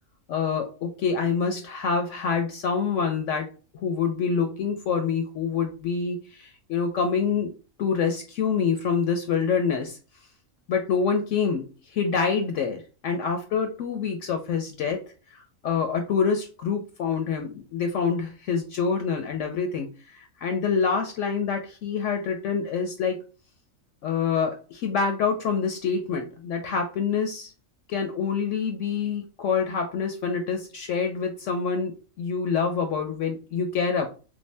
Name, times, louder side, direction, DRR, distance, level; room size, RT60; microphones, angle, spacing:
voice 1, 0.3-3.5 3.7-7.5 7.8-10.0 10.7-11.6 11.9-15.0 15.3-23.2 24.0-27.5 27.9-34.1, left 6 dB, 70° left, 4 dB, 0.9 m, -26 dB
3.4 x 2.6 x 3.3 m, 0.34 s
omnidirectional pair, 1.4 m